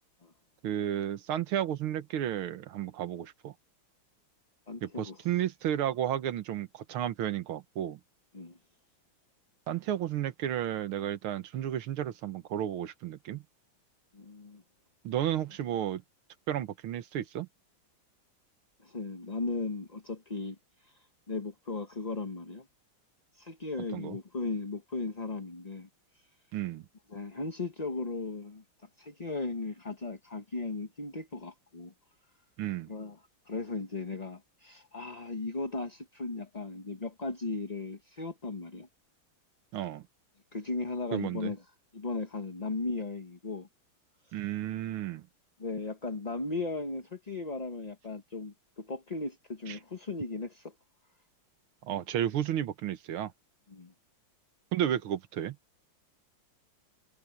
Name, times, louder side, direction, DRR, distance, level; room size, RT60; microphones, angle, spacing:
voice 1, 0.6-3.5 4.8-8.0 9.7-13.4 15.0-16.0 16.5-17.5 23.9-24.2 26.5-26.8 32.6-32.9 39.7-40.0 41.1-41.5 44.3-45.2 49.7-49.8 51.8-53.3 54.7-55.6, right 11 dB, 80° right, 1.9 m, -32 dB
voice 2, 4.7-5.3 8.3-8.6 14.1-14.6 18.8-21.0 21.3-22.7 23.3-25.9 27.1-28.6 29.0-31.9 32.9-38.9 40.5-41.6 41.9-43.7 44.3-44.4 45.6-50.7 53.7-53.9, left 3 dB, 25° left, 1.0 m, -37 dB
omnidirectional pair, 2.3 m